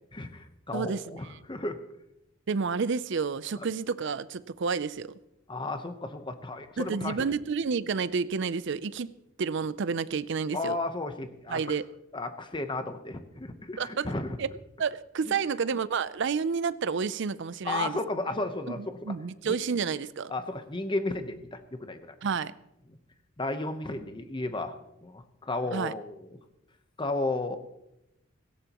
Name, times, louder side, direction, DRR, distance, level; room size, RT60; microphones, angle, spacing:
voice 1, 0.1-1.8 3.6-3.7 5.5-7.3 10.5-11.6 12.1-14.4 15.3-15.4 17.6-19.1 19.4-19.6 20.3-22.1 23.4-24.7 25.0-26.3 27.0-27.6, left 2 dB, 25° left, 8 dB, 0.9 m, -33 dB
voice 2, 0.7-1.2 2.5-5.1 6.8-9.1 9.4-10.8 11.5-11.9 13.8-14.1 14.4-14.5 14.8-18.0 18.7-20.3 22.2-22.5 25.7-25.9, right 5 dB, 65° right, 16 dB, 0.5 m, -30 dB
17.5 x 16.5 x 3.0 m, 0.89 s
head